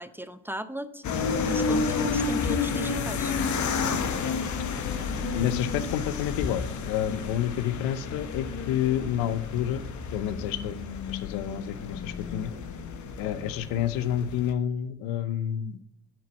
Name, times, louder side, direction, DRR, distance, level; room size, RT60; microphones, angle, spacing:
voice 1, 0.0-3.3 3.8-4.1 12.5-12.6, right 1 dB, 5° right, 11 dB, 0.6 m, -37 dB
sound 1, 1.0-14.5, left 5 dB, 55° left, 1.2 m, -31 dB
voice 2, 5.3-9.8 10.1-10.8 11.1-12.5 13.2-15.8, left 10 dB, 75° left, 15 dB, 0.7 m, -29 dB
10.0 x 4.5 x 7.3 m, 0.77 s
hypercardioid pair, 65°, 35 cm